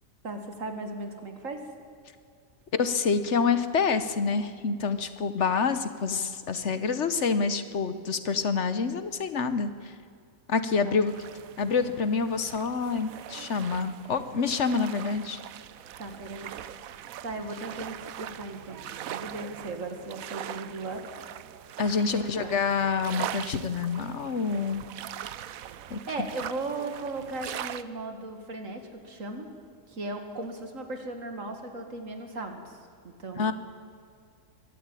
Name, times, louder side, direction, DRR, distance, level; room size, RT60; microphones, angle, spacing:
voice 1, 0.2-1.6 10.8-11.1 16.0-16.5 17.2-21.0 22.1-22.5 26.1-29.5 29.9-32.7 33.0-33.5, right 2 dB, 70° right, 5 dB, 2.5 m, -37 dB
voice 2, 2.7-9.9 10.5-11.1 11.6-15.4 21.8-24.8 25.9-26.3 33.4-33.5, left 5 dB, 60° left, 11 dB, 1.3 m, -27 dB
sound 1, 11.1-27.8, right 10 dB, 90° right, 1.1 m, -41 dB
24.0 x 12.5 x 9.0 m, 2.3 s
omnidirectional pair, 1.4 m